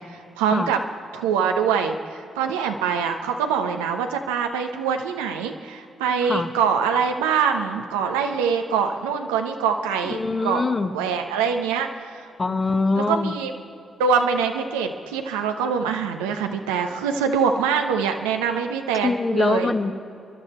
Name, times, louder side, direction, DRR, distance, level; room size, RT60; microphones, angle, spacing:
voice 1, 0.1-0.8 1.1-10.6 10.9-12.3 13.0-13.5 14.0-19.7, right 6 dB, 85° right, 5 dB, 0.8 m, -24 dB
voice 2, 10.0-11.0 12.4-13.4 19.0-19.9, left 3 dB, 35° left, 8 dB, 1.2 m, -23 dB
26.0 x 11.5 x 4.3 m, 2.7 s
hypercardioid pair, 40°, 0 cm